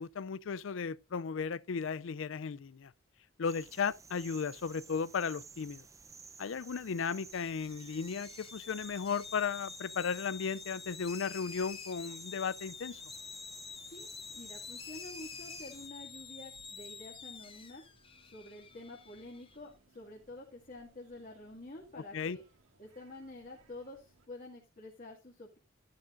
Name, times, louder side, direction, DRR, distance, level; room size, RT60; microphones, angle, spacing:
voice 1, 0.0-2.9 3.4-5.9 6.4-13.0 22.1-22.4, left 6 dB, 65° left, 0.4 m, -35 dB
sound 1, 3.5-15.9, right 4 dB, 15° right, 0.6 m, -53 dB
sound 2, 7.3-19.6, left 6 dB, 25° left, 0.9 m, -48 dB
sound 3, 12.8-24.3, right 2 dB, 90° right, 2.0 m, -66 dB
voice 2, 13.9-17.8 18.2-22.4 22.8-25.6, left 2 dB, 40° left, 2.0 m, -49 dB
12.0 x 11.0 x 2.5 m
head